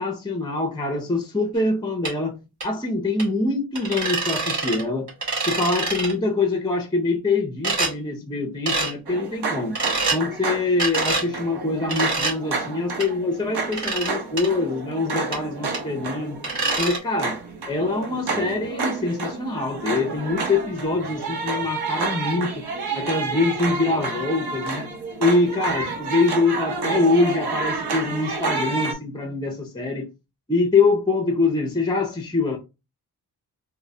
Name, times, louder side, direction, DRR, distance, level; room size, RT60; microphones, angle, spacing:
voice 1, 0.0-5.1 5.4-9.8 10.1-16.4 16.8-17.4 17.7-22.6 22.9-24.9 25.2-30.1 30.5-32.6, left 3 dB, 10° left, 0.5 m, -24 dB
sound 1, 2.0-2.1 2.6-2.7 3.2-3.3 3.7-4.8 5.1-6.1 7.6-7.9 8.7-8.9 9.7-10.2 10.8-11.3 11.9-12.3 13.0-13.1 13.7-14.1 14.4-14.5 15.3-15.4 15.7-15.8 16.4-17.0, right 3 dB, 50° right, 1.9 m, -25 dB
sound 2, 9.1-28.9, right 4 dB, 80° right, 0.8 m, -29 dB
3.8 x 2.1 x 3.2 m
wide cardioid pair, 130°, 39 cm